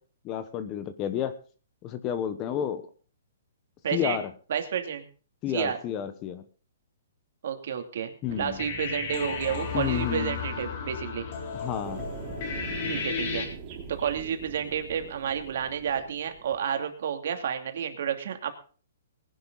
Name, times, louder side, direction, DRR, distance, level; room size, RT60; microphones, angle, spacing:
voice 1, 0.2-1.4 1.8-2.8 3.9-4.3 5.4-6.4 8.2-8.6 9.7-10.4 11.5-12.0, left 9 dB, 20° left, 12 dB, 1.1 m, -30 dB
voice 2, 3.8-4.2 4.5-5.0 5.5-5.8 7.4-11.3 12.8-13.5 13.9-18.5, right 8 dB, 55° right, 6 dB, 2.7 m, -30 dB
sound 1, 8.3-13.5, left 5 dB, 40° left, 3.8 m, -34 dB
sound 2, 11.8-16.8, right 4 dB, 25° right, 3.8 m, -42 dB
19.5 x 11.0 x 4.0 m, 0.39 s
hypercardioid pair, 165°, 0 cm